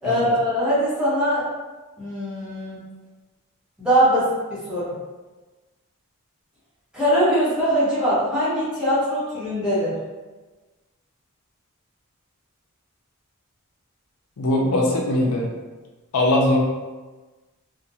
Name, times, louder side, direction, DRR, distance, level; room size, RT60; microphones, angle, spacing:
voice 1, 0.0-1.4 2.0-2.8 3.8-4.9 6.9-9.9, equal, 5° right, -12 dB, 0.9 m, -22 dB
voice 2, 14.4-15.5 16.1-16.6, left 1 dB, 85° left, -1 dB, 0.5 m, -20 dB
2.5 x 2.1 x 2.7 m, 1.2 s
head